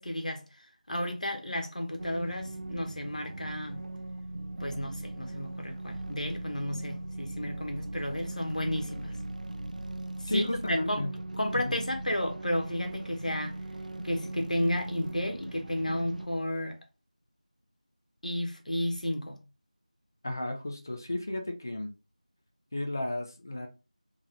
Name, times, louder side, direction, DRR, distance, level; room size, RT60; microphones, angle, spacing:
voice 1, 0.0-3.9 4.6-9.2 10.2-11.1 11.4-13.6 14.0-16.8 18.2-19.4, left 1 dB, 70° left, 1.2 m, -32 dB
sound 1, 2.0-16.3, right 2 dB, 75° right, 0.4 m, -39 dB
voice 2, 10.3-11.2 11.5-11.8 20.2-21.9 22.7-23.7, left 1 dB, 25° left, 0.5 m, -33 dB
3.7 x 2.9 x 2.9 m
figure-of-eight pair, 175°, 4 cm